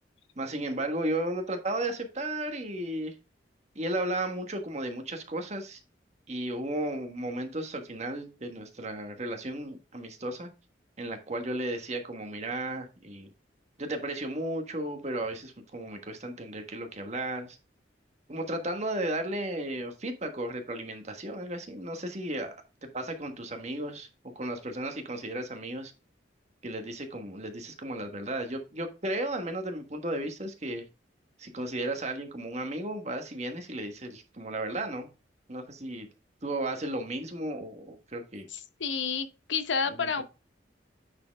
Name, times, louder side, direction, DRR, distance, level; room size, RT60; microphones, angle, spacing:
voice 1, 0.4-3.1 3.7-5.8 6.3-10.5 11.0-13.3 13.8-17.6 18.3-24.1 24.3-25.9 26.6-30.8 31.4-35.1 35.5-36.1 36.4-38.5 40.0-40.2, right 1 dB, 40° right, 1.3 m, -34 dB
voice 2, 38.5-40.2, left 5 dB, 90° left, 0.9 m, -30 dB
9.4 x 4.5 x 3.4 m
head